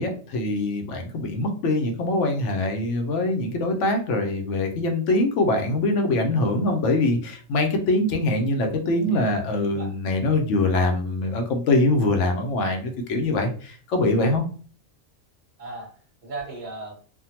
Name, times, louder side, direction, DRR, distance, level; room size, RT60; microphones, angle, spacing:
voice 1, 0.0-14.4, left 2 dB, 70° left, 4 dB, 1.0 m, -23 dB
voice 2, 8.9-9.9 15.6-16.9, right 3 dB, 40° right, -1 dB, 1.1 m, -38 dB
3.5 x 2.2 x 2.8 m, 0.41 s
omnidirectional pair, 1.3 m